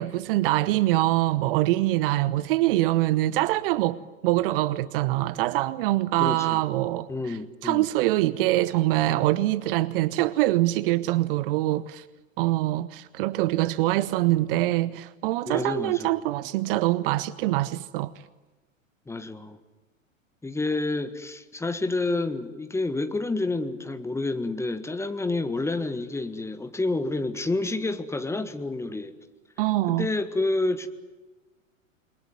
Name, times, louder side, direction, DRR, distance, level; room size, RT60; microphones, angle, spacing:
voice 1, 0.0-7.4 7.6-12.0 12.4-18.1 29.6-30.1, right 16 dB, 45° right, 0.9 m, -24 dB
voice 2, 6.2-6.6 7.1-7.9 15.5-16.2 19.1-19.6 20.4-29.1 29.9-30.9, left 2 dB, 5° left, 1.6 m, -29 dB
28.5 x 22.0 x 9.3 m
figure-of-eight pair, 95°, 40 cm